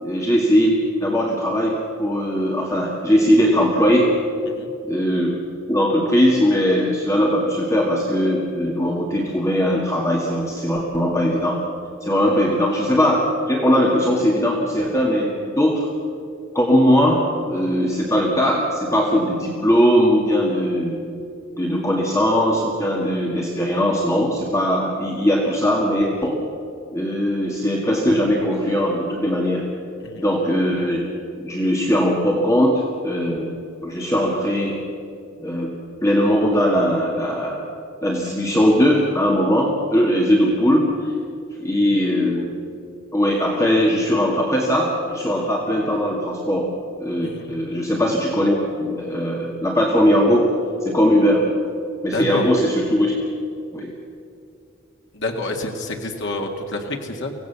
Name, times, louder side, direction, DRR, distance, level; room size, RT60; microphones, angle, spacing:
voice 1, 0.0-4.1 4.8-5.4 5.7-11.6 12.0-15.9 16.5-21.0 21.6-26.4 26.9-29.7 30.2-31.0 31.4-33.5 33.8-34.8 35.4-35.7 36.0-37.7 38.0-41.1 41.6-42.5 43.1-46.7 47.0-50.5 50.8-51.5 52.0-53.2 53.7-53.9, equal, 15° left, -2 dB, 2.0 m, -19 dB
voice 2, 47.2-47.5 52.1-52.5 55.1-57.3, left 2 dB, 65° left, 2 dB, 2.0 m, -28 dB
24.5 x 17.5 x 7.0 m, 2.6 s
head